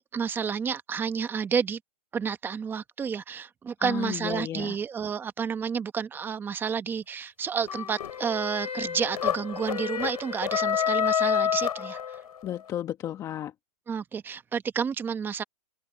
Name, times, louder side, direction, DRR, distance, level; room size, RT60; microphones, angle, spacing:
voice 1, 0.0-1.8 2.1-12.2 13.9-15.4, right 6 dB, 10° right, 1.1 m, -30 dB
voice 2, 3.8-4.7 12.4-13.5, left 11 dB, 15° left, 1.0 m, -33 dB
sound 1, 7.7-12.5, left 8 dB, 75° left, 3.6 m, -28 dB
open air
hypercardioid pair, 150°, 20 cm